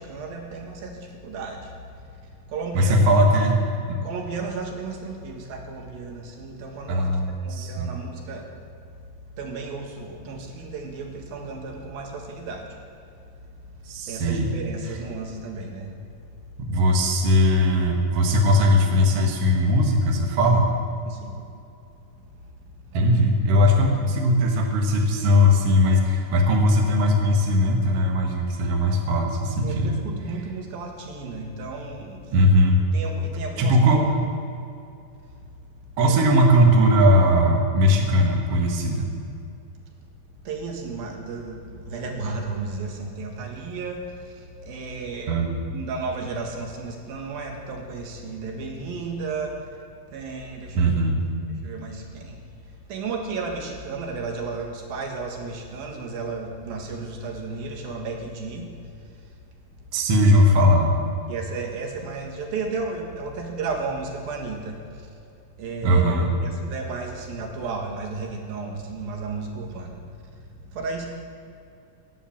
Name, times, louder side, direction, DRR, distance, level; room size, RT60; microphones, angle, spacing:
voice 1, 0.0-1.7 2.2-3.1 4.0-8.5 9.4-12.8 14.1-15.9 21.0-21.5 29.6-32.3 32.9-34.1 36.0-36.3 40.4-45.4 45.7-49.6 50.1-51.0 51.6-59.3 61.3-65.1 65.6-66.1 66.4-70.2 70.7-71.1, right 4 dB, 70° right, 2 dB, 3.3 m, -34 dB
voice 2, 2.7-3.6 3.9-4.0 6.9-7.9 13.9-14.5 16.6-20.7 22.9-30.0 32.3-32.8 33.6-34.0 36.0-39.1 45.3-45.6 50.7-51.2 59.9-60.9 65.8-66.3, equal, 55° right, 1 dB, 1.9 m, -19 dB
18.0 x 7.3 x 7.3 m, 2.5 s
omnidirectional pair, 4.4 m